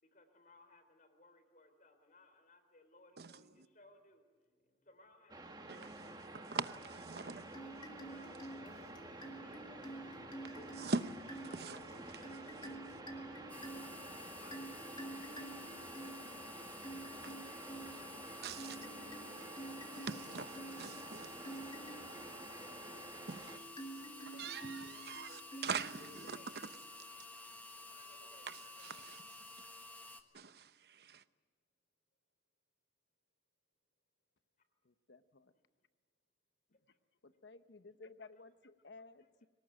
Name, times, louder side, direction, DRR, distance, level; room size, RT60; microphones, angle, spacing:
voice 1, 0.0-6.7 7.3-10.0 10.5-10.9 11.5-12.6 13.1-16.8 17.2-21.8 22.6-22.8 24.0-27.6 27.9-29.1 36.7-36.8 37.3-37.5 38.4-38.5 39.2-39.5, left 2 dB, 50° left, 3.8 m, -64 dB
sound 1, 5.3-23.6, right 2 dB, 25° right, 1.6 m, -51 dB
voice 2, 6.5-7.5 10.4-11.8 18.4-18.8 19.9-20.5 20.8-21.3 23.3-23.9 24.3-26.7 28.5-29.2 30.3-31.2, right 4 dB, 60° right, 0.9 m, -43 dB
sound 2, 7.5-26.7, right 1 dB, 30° left, 2.3 m, -50 dB
sound 3, 13.5-30.2, left 2 dB, 10° left, 1.4 m, -52 dB
voice 3, 14.0-14.7 34.8-35.5 37.2-39.5, left 3 dB, 85° left, 1.0 m, -57 dB
23.5 x 19.0 x 9.0 m
head